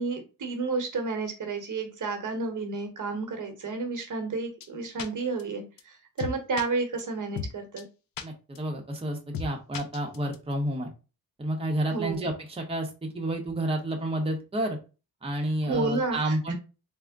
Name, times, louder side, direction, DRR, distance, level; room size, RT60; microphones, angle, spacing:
voice 1, 0.0-7.8 11.9-12.3 15.7-16.4, right 3 dB, 55° right, 5 dB, 1.0 m, -31 dB
sound 1, 4.6-4.7 5.0-5.1 5.4-5.5 5.8-5.9 6.2-6.6 7.0-7.1 7.4-7.5 7.8-7.9 8.2-8.3 8.6-8.7 9.0-9.1 9.3-9.5 9.7-10.4, left 5 dB, 65° left, 0.6 m, -34 dB
voice 2, 8.2-10.9 11.4-14.8 15.2-16.5, right 1 dB, 15° right, 1 dB, 0.8 m, -30 dB
3.6 x 2.1 x 3.4 m, 0.31 s
cardioid pair, 95°, 37 cm